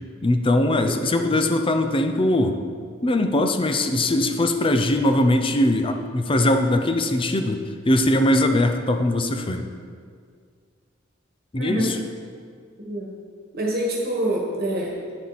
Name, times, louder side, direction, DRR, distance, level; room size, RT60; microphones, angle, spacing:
voice 1, 0.2-2.5 3.0-7.6 7.9-9.7 11.5-12.0, left 1 dB, 25° left, 6 dB, 0.6 m, -21 dB
voice 2, 11.5-11.9 12.8-13.1 13.5-15.1, right 1 dB, 50° right, -2 dB, 1.4 m, -26 dB
9.5 x 7.2 x 4.1 m, 2.1 s
head